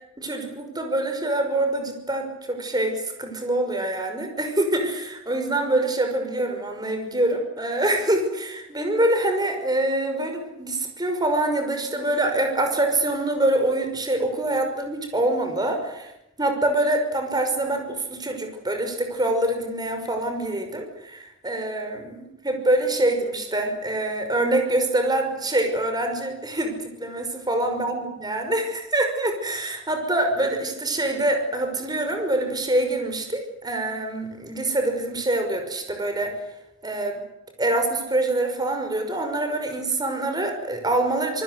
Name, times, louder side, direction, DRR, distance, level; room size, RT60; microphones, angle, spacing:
voice 1, 0.2-16.1 16.4-36.3 36.8-37.2 37.6-41.4, right 1 dB, 20° right, 5 dB, 5.8 m, -25 dB
27.0 x 20.0 x 8.1 m, 0.88 s
head